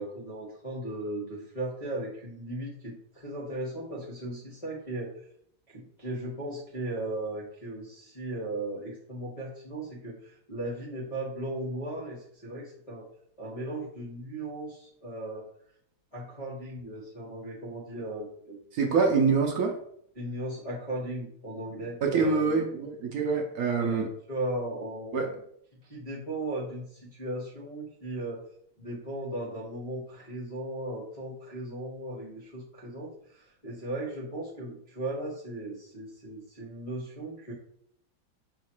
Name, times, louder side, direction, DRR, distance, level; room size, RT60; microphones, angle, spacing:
voice 1, 0.0-5.2 5.7-13.1 13.4-15.5 16.1-18.6 20.1-22.5 23.8-25.1 25.8-28.5 28.8-37.5, right 1 dB, 35° left, -8 dB, 0.5 m, -37 dB
voice 2, 18.7-19.7 22.0-24.1 25.1-25.3, right 5 dB, 65° right, 2 dB, 0.9 m, -25 dB
3.9 x 2.4 x 4.4 m, 0.67 s
omnidirectional pair, 2.2 m